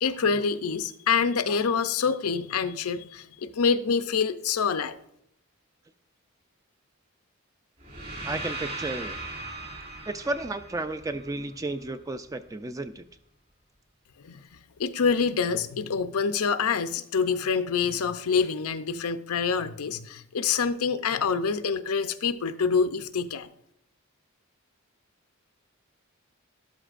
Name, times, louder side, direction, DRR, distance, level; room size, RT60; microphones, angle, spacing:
voice 1, 0.0-5.0 14.2-14.4 14.8-23.5, left 5 dB, 85° left, 10 dB, 0.6 m, -26 dB
sound 1, 7.8-11.9, right 2 dB, 45° right, 3.0 m, -38 dB
voice 2, 8.2-9.2 10.1-13.0, right 2 dB, 15° right, 11 dB, 0.3 m, -33 dB
13.0 x 11.5 x 2.5 m, 0.77 s
head